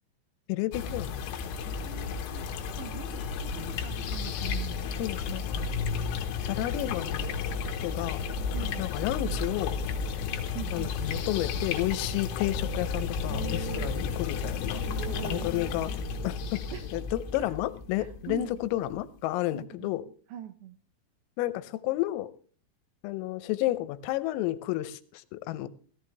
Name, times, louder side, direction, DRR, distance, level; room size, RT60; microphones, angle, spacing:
voice 1, 0.5-1.2 5.0-5.7 6.5-7.3 7.8-8.2 8.8-9.8 10.7-14.8 15.2-15.9 16.2-16.6 16.9-20.0 21.4-22.3 23.0-25.7, left 16 dB, 85° left, 14 dB, 3.4 m, -31 dB
sound 1, 0.7-18.9, left 5 dB, 70° left, 3.1 m, -33 dB
voice 2, 1.6-2.5 2.8-4.8 8.5-8.9 10.5-10.9 13.3-14.0 14.8-15.6 16.7-17.1 17.4-17.5 18.0-18.5 19.5-20.8, right 11 dB, 80° right, 9 dB, 2.6 m, -42 dB
16.0 x 14.5 x 3.3 m, 0.41 s
omnidirectional pair, 5.9 m